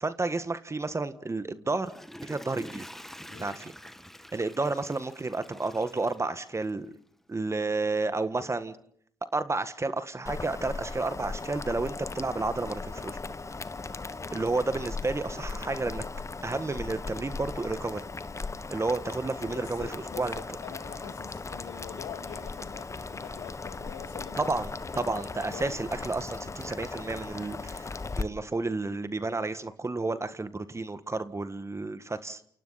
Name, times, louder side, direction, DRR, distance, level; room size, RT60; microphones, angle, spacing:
voice 1, 0.0-1.9 2.2-2.9 3.4-3.7 4.3-7.0 7.3-8.8 9.3-13.2 14.3-16.0 16.4-18.0 18.7-20.4 24.4-24.7 24.9-27.9 28.2-32.4, right 3 dB, 30° right, 1.6 m, -31 dB
Water / Toilet flush, 1.6-6.9 7.4-7.5, equal, 5° left, 1.8 m, -46 dB
Boiling, 10.3-28.2, left 3 dB, 30° left, 1.3 m, -38 dB
voice 2, 19.5-24.6 24.9-25.8, left 10 dB, 80° left, 2.3 m, -44 dB
29.5 x 28.5 x 4.2 m
hypercardioid pair, 45°, 10 cm